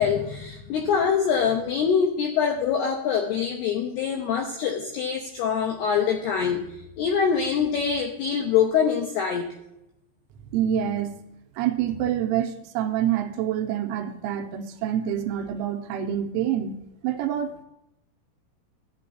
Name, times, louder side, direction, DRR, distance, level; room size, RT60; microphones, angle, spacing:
voice 1, 0.0-6.6 7.0-9.5, left 7 dB, 80° left, 2 dB, 2.3 m, -24 dB
voice 2, 10.5-11.1 11.6-16.8 17.0-17.6, right 10 dB, 80° right, 5 dB, 3.0 m, -26 dB
14.5 x 9.1 x 2.7 m, 0.87 s
omnidirectional pair, 5.7 m